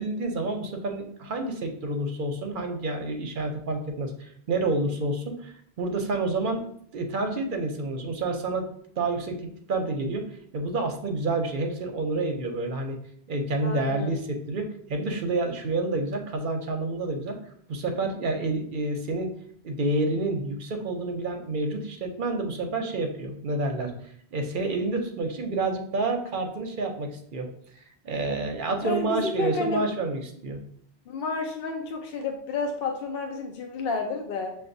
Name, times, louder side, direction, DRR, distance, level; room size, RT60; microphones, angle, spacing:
voice 1, 0.0-6.7 6.9-8.7 9.0-9.4 9.7-10.3 10.5-13.0 13.3-17.4 17.7-19.3 19.6-23.9 24.3-27.5 27.8-30.6, right 2 dB, 55° right, 4 dB, 0.7 m, -29 dB
voice 2, 13.6-14.1 28.8-29.8 31.1-34.5, left 3 dB, 65° left, 2 dB, 0.7 m, -30 dB
6.7 x 2.3 x 2.6 m, 0.64 s
omnidirectional pair, 1.1 m